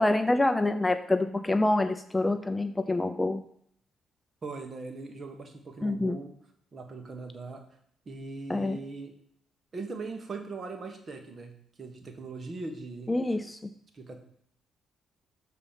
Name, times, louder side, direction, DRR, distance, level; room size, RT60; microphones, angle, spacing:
voice 1, 0.0-3.4 5.8-6.2 8.5-8.8 13.1-13.6, left 2 dB, 15° left, 10 dB, 0.4 m, -26 dB
voice 2, 4.4-6.3 6.7-7.6 8.0-9.1 9.7-11.5 11.8-13.1 13.9-14.2, right 3 dB, 35° right, 4 dB, 1.4 m, -40 dB
6.8 x 4.1 x 5.7 m, 0.67 s
cardioid pair, 90°, 0 cm